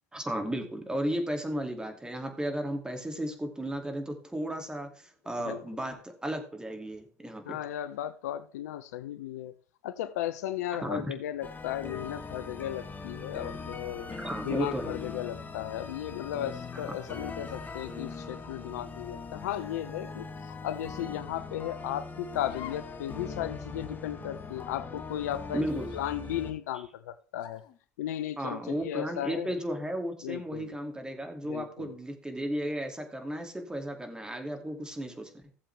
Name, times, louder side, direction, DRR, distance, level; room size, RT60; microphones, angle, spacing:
voice 1, 0.1-7.6 10.8-11.1 14.1-15.0 25.5-25.9 28.4-35.4, right 1 dB, 10° right, 2.4 m, -34 dB
voice 2, 5.4-5.9 7.5-9.5 9.8-14.1 14.4-25.6 25.9-27.6 28.0-29.6 30.2-30.7 31.5-31.9, left 12 dB, 75° left, 0.7 m, -35 dB
sound 1, 11.4-26.5, left 4 dB, 20° left, 1.6 m, -41 dB
sound 2, 18.4-18.8 19.5-19.7 20.7-21.1 22.5-23.0 23.3-23.4 24.3-24.7 25.6-26.5 27.4-27.8, left 11 dB, 55° left, 1.2 m, -51 dB
15.5 x 7.4 x 3.3 m
hypercardioid pair, 80°, 9 cm